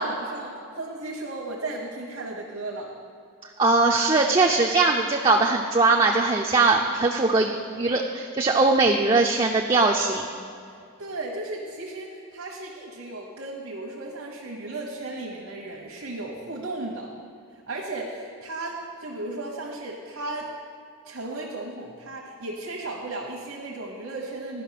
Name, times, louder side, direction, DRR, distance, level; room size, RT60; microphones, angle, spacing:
voice 1, 0.0-2.9 11.0-17.1 17.7-20.5 21.0-24.6, right 2 dB, 70° right, -4 dB, 1.0 m, -35 dB
voice 2, 3.6-10.2, right 3 dB, 25° right, 0 dB, 0.4 m, -21 dB
11.0 x 5.6 x 5.8 m, 2.4 s
head